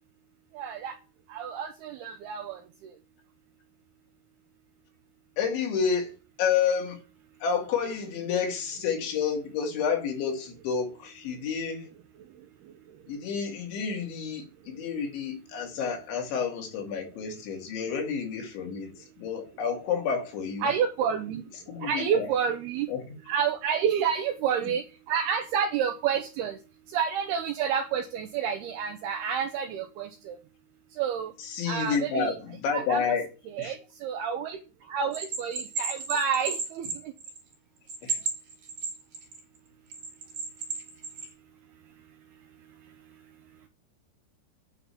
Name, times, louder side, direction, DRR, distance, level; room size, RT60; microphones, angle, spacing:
voice 1, 0.5-1.0 1.3-2.6 20.6-21.4 21.8-22.9 23.3-26.6 26.9-30.4 31.0-31.3 31.7-32.3 32.7-33.1 33.5-34.6 34.9-37.1, right 7 dB, 75° right, 2.4 m, -29 dB
voice 2, 5.4-7.0 7.4-11.8 13.1-18.9 19.2-20.7 21.7-22.3 22.9-23.0 31.4-33.3 33.6-33.7 38.0-38.1, left 6 dB, 70° left, 4.8 m, -30 dB
Bell, 35.1-37.5 37.9-39.4 39.9-41.3, right 4 dB, 40° right, 4.5 m, -33 dB
9.8 x 6.1 x 7.0 m
omnidirectional pair, 5.5 m